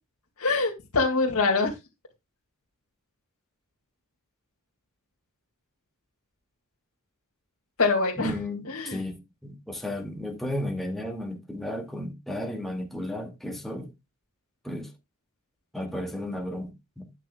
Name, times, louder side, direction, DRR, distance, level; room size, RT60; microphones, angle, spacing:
voice 1, 0.4-1.7 7.8-8.3 8.7-9.0, left 3 dB, 85° left, 2.1 m, -24 dB
voice 2, 8.2-13.9 14.6-14.9 15.7-17.1, left 1 dB, ahead, 2.1 m, -34 dB
12.0 x 8.9 x 2.2 m
head